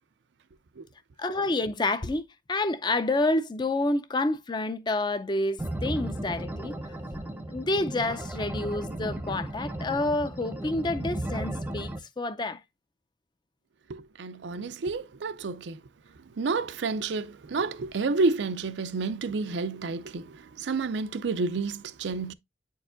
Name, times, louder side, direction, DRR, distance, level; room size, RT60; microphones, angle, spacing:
voice 1, 1.2-6.8 7.1-7.2 7.5-12.6, left 2 dB, 25° left, 0.5 m, -29 dB
sound 1, 5.6-12.0, right 1 dB, 10° right, 0.7 m, -35 dB
voice 2, 13.9-15.8 16.3-22.3, right 3 dB, 85° right, 0.5 m, -30 dB
8.9 x 4.6 x 2.5 m
head